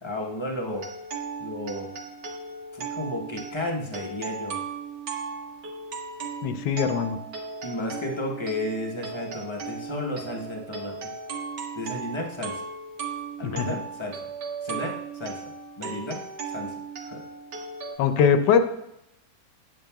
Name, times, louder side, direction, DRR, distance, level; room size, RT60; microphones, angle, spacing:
voice 1, 0.0-0.9 1.4-1.9 2.7-4.6 7.6-11.1 11.7-12.6 13.4-14.2 14.6-15.4 15.8-16.7 17.0-17.2, left 1 dB, 30° left, 0 dB, 0.5 m, -33 dB
sound 1, 0.7-18.0, right 5 dB, 75° right, 1.5 m, -36 dB
voice 2, 6.4-7.2 13.5-13.8 18.0-18.6, left 7 dB, 80° left, 9 dB, 1.2 m, -21 dB
9.0 x 7.1 x 2.2 m, 0.82 s
omnidirectional pair, 1.9 m